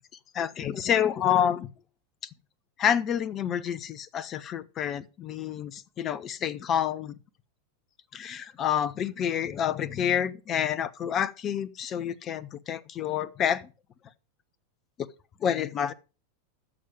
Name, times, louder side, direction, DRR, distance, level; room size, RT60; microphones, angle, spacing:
voice 1, 0.3-1.7 2.8-7.1 8.1-13.7 15.4-15.9, left 9 dB, 30° left, 0.9 m, -28 dB
14.0 x 6.6 x 5.3 m
figure-of-eight pair, 90°, 0 cm